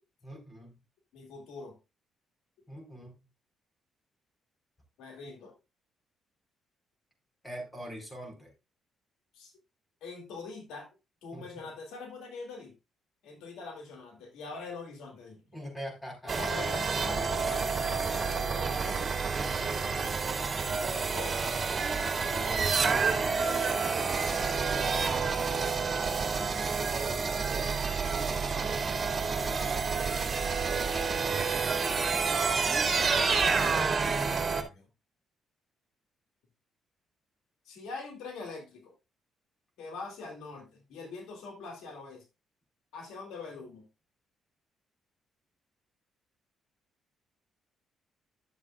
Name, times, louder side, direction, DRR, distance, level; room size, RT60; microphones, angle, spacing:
voice 1, 0.2-0.8 2.7-3.2 7.4-8.5 11.3-11.7 15.5-16.4 19.4-20.4 22.3-26.3 29.2-30.0, equal, 15° left, 2 dB, 4.6 m, -44 dB
voice 2, 1.1-1.8 5.0-5.5 9.3-9.5 10.0-10.9 11.2-12.7 13.2-15.4 16.2-19.8 20.7-21.4 27.0-27.3 30.9-31.3 33.1-34.9 37.7-38.9 39.8-42.2 42.9-43.9, left 4 dB, 85° left, 2 dB, 2.5 m, -44 dB
sound 1, 16.3-34.6, right 5 dB, 35° right, 2.3 m, -29 dB
12.0 x 7.4 x 2.5 m, 0.26 s
cardioid pair, 90°, 0 cm